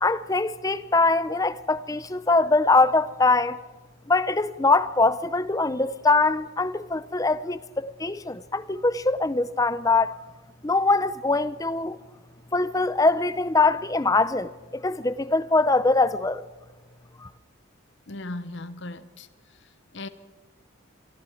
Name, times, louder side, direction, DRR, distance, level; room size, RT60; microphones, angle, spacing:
voice 1, 0.0-3.6 4.1-10.1 10.6-12.0 12.5-16.4 17.2-17.3, left 3 dB, 15° left, 0.6 m, -23 dB
voice 2, 18.1-20.1, left 2 dB, 55° left, 0.9 m, -38 dB
25.0 x 24.5 x 4.6 m
head